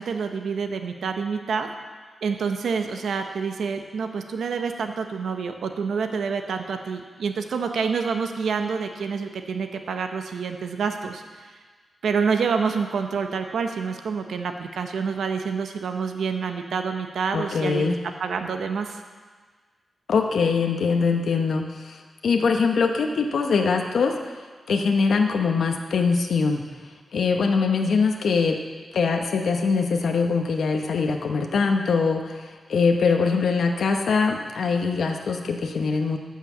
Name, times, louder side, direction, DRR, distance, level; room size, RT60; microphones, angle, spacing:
voice 1, 0.0-1.7 2.2-11.5 12.0-19.0, right 5 dB, 85° right, 6 dB, 0.9 m, -27 dB
voice 2, 17.3-18.0 20.1-24.2 24.7-26.6 27.1-28.6 28.9-36.2, left 5 dB, 70° left, 3 dB, 0.9 m, -22 dB
13.5 x 5.8 x 7.2 m, 1.5 s
wide cardioid pair, 175°, 0 cm